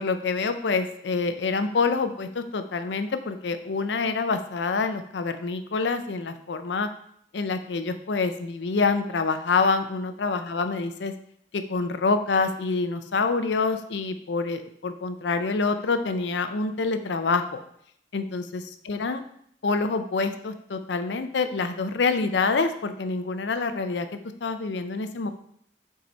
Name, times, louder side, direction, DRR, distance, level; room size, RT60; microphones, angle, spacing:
voice 1, 0.0-6.9 7.3-11.1 11.5-17.6 18.1-19.2 19.6-24.1 24.4-25.3, left 4 dB, 85° left, 9 dB, 0.5 m, -26 dB
6.1 x 4.6 x 4.1 m, 0.68 s
head